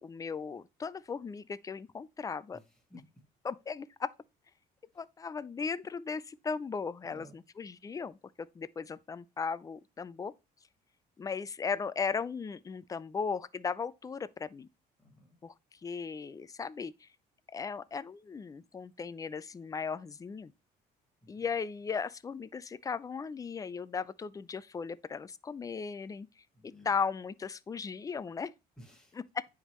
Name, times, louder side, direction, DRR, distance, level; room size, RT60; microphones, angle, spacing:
voice 1, 0.0-2.6 3.4-4.1 5.0-10.3 11.2-14.7 15.4-15.5 15.8-17.1 17.5-20.5 21.3-26.3 26.9-28.5 29.3-29.5, left 5 dB, 20° left, 0.4 m, -37 dB
voice 2, 2.5-3.0 7.0-7.4 15.0-15.4 21.2-21.5 26.5-27.0 28.8-29.2, equal, 5° left, 2.2 m, -55 dB
9.7 x 3.6 x 3.0 m
cardioid pair, 110°, 17 cm